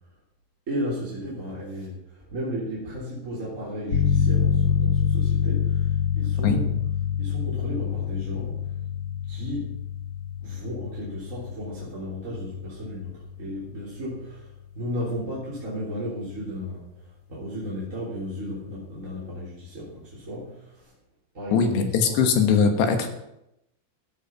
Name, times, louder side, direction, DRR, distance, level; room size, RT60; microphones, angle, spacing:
voice 1, 0.7-6.9 7.2-8.7 9.3-9.7 10.4-20.9 21.3-22.2, equal, 20° right, -8 dB, 2.8 m, -34 dB
sound 1, 3.9-14.4, left 7 dB, 45° left, 1.7 m, -26 dB
voice 2, 21.5-23.1, left 6 dB, 70° left, 5 dB, 3.1 m, -21 dB
14.0 x 7.8 x 5.7 m, 0.85 s
omnidirectional pair, 5.6 m